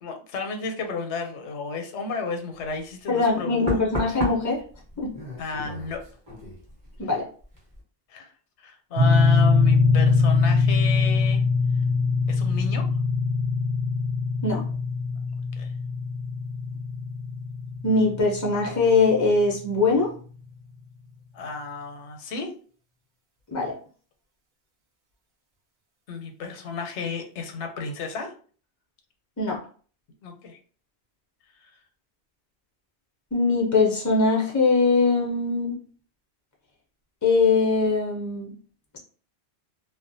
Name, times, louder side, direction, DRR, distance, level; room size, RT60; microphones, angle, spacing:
voice 1, 0.0-3.7 5.4-6.0 8.1-8.3 8.6-11.4 12.3-12.9 15.6-15.7 21.3-22.5 26.1-28.3 30.2-30.6, left 4 dB, 90° left, 5 dB, 0.9 m, -33 dB
Knock, 2.6-2.8 3.7-7.1 7.4-7.8, left 1 dB, 20° right, 0.9 m, -34 dB
voice 2, 3.1-4.6 5.0-5.1 7.0-7.2 14.4-14.6 17.8-20.1 23.5-23.7 29.4-29.6 33.3-35.8 37.2-38.5, left 3 dB, 30° left, -2 dB, 0.3 m, -21 dB
sound 1, 9.0-19.1, left 4 dB, 55° right, 0.6 m, -22 dB
2.3 x 2.1 x 2.6 m, 0.43 s
omnidirectional pair, 1.1 m